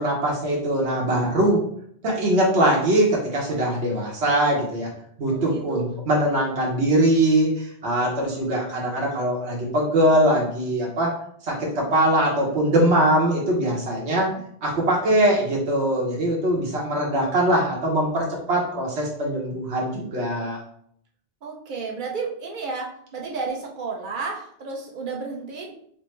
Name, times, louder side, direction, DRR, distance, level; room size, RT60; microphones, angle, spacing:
voice 1, 0.0-1.6 2.0-4.9 5.2-11.1 11.4-14.3 14.6-20.6, right 1 dB, 80° right, -4 dB, 1.2 m, -22 dB
voice 2, 5.3-5.9 14.2-14.3 21.4-25.7, right 4 dB, 50° right, 0 dB, 0.9 m, -32 dB
5.7 x 2.1 x 3.1 m, 0.66 s
omnidirectional pair, 1.1 m